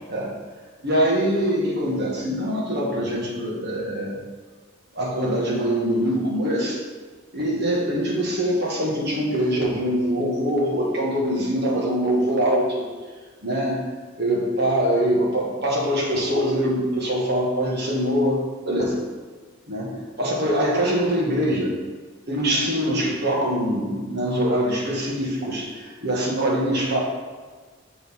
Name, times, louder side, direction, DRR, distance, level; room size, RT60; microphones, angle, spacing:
voice 1, 0.8-4.2 4.9-6.8 7.3-12.9 13.4-13.8 14.2-19.0 19.7-21.7 22.3-27.0, equal, 55° right, -3 dB, 1.8 m, -23 dB
6.8 x 6.3 x 3.7 m, 1.4 s
head